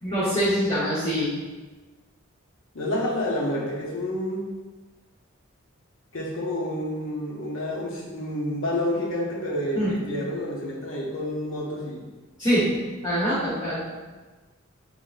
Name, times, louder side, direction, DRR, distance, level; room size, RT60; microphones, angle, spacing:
voice 1, 0.0-1.3 9.7-9.9 12.4-12.7 13.0-13.8, equal, 25° left, -14 dB, 1.1 m, -24 dB
voice 2, 2.7-4.5 6.1-12.1, left 1 dB, 70° left, -2 dB, 0.7 m, -29 dB
3.8 x 3.5 x 2.5 m, 1.3 s
head